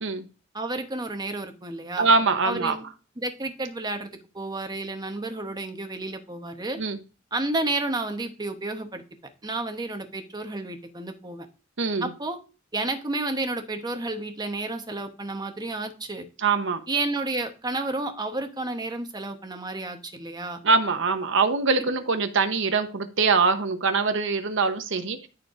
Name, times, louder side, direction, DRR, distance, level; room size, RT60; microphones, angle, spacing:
voice 1, 0.5-2.1 2.4-2.8 3.2-6.8 7.3-9.0 9.4-11.5 12.0-12.4 12.7-16.2 16.9-20.6 21.8-21.9, right 2 dB, 20° right, 6 dB, 1.0 m, -31 dB
voice 2, 2.0-2.8 6.8-7.0 11.8-12.1 16.4-16.8 20.6-25.3, right 4 dB, 65° right, 8 dB, 0.9 m, -23 dB
13.0 x 4.5 x 2.5 m, 0.33 s
head